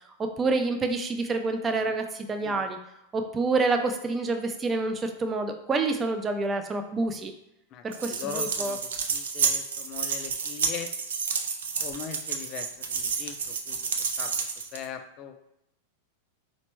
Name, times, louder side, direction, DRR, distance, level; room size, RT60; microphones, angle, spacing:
voice 1, 0.2-2.8 3.1-7.3 7.8-8.8, right 3 dB, 20° right, 6 dB, 0.4 m, -28 dB
voice 2, 7.7-10.9 11.8-13.9 14.2-14.3 14.7-15.5, left 8 dB, 40° left, 7 dB, 0.4 m, -40 dB
sound 1, 7.9-14.9, right 6 dB, 90° right, 0.4 m, -30 dB
4.2 x 2.1 x 3.0 m, 0.86 s
hypercardioid pair, 125°, 0 cm